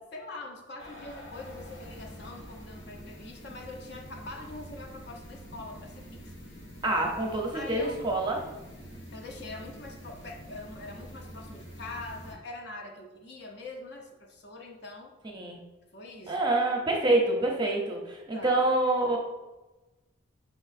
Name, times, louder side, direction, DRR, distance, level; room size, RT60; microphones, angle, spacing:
voice 1, 0.1-6.3 7.5-8.2 9.1-15.1 15.9-16.5 16.8-16.9 18.3-18.5, left 2 dB, 55° left, 2 dB, 0.6 m, -43 dB
sound 1, 0.8-12.3, equal, 75° left, 1.4 m, -46 dB
voice 2, 6.8-8.4 15.3-15.6 16.3-19.2, right 2 dB, 20° right, 0 dB, 0.6 m, -26 dB
5.3 x 3.6 x 2.4 m, 1.1 s
head